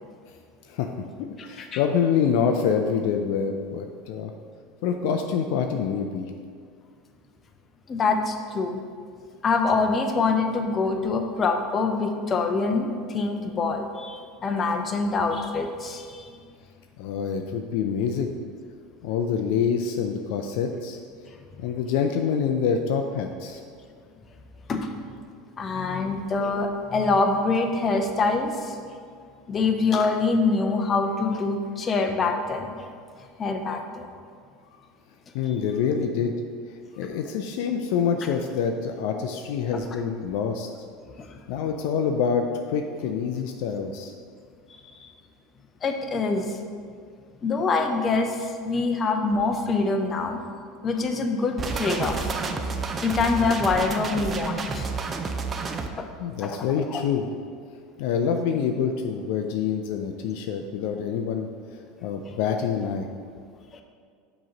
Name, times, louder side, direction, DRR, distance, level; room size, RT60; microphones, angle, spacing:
voice 1, 0.6-4.3 4.8-6.3 17.0-18.3 19.0-21.0 21.6-23.6 35.3-36.3 37.0-40.7 41.5-44.1 56.2-57.3 58.0-61.5 62.0-63.1, left 7 dB, 70° left, 4 dB, 0.3 m, -26 dB
voice 2, 1.4-1.8 7.9-8.8 9.4-16.3 24.7-24.9 25.6-28.8 29.5-32.9 33.4-34.1 41.2-41.4 44.9-45.1 45.8-46.6 47.4-50.4 50.8-52.3 53.0-54.9 56.0-56.1 56.4-57.0 62.2-62.3, left 3 dB, 30° left, 5 dB, 0.6 m, -25 dB
sound 1, 51.6-55.9, right 4 dB, 30° right, 0.5 m, -30 dB
6.1 x 3.0 x 5.2 m, 2.2 s
hypercardioid pair, 95°, 0 cm